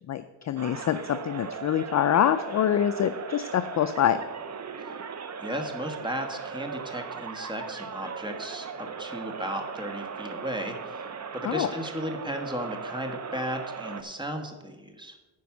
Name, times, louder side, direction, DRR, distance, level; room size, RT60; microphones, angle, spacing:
voice 1, 0.1-4.2 11.4-11.7, left 10 dB, 40° left, 11 dB, 0.4 m, -25 dB
sound 1, 0.6-14.0, right 6 dB, 35° right, 0.8 m, -38 dB
voice 2, 5.4-11.0 11.3-15.1, equal, 10° right, 5 dB, 1.3 m, -35 dB
9.4 x 5.2 x 7.1 m, 1.2 s
cardioid pair, 100°, 49 cm